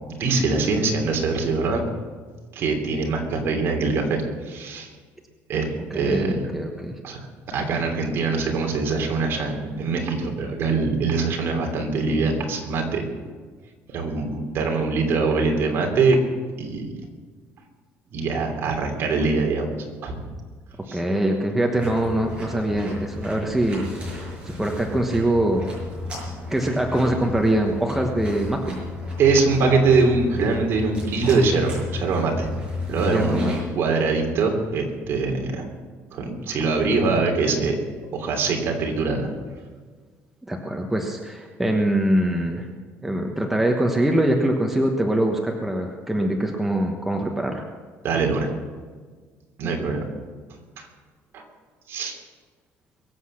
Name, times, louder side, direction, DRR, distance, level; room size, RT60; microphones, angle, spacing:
voice 1, 0.1-1.8 2.5-4.9 5.5-6.4 7.0-7.3 7.5-13.0 13.9-16.2 16.6-16.9 18.1-19.7 20.0-20.2 20.9-21.0 29.2-32.5 32.9-35.7 36.1-37.8 38.1-39.3 48.0-48.5 49.6-50.0 51.3-51.4 51.9-52.2, right 4 dB, 50° right, 1 dB, 3.1 m, -23 dB
voice 2, 5.9-7.0 20.9-24.3 24.6-25.7 26.5-28.8 33.1-33.5 40.5-42.6 43.0-47.6, right 1 dB, 5° right, 1 dB, 1.2 m, -23 dB
sound 1, 21.7-33.6, left 2 dB, 20° right, 6.0 m, -33 dB
22.5 x 8.1 x 6.5 m, 1.5 s
cardioid pair, 155°, 5 cm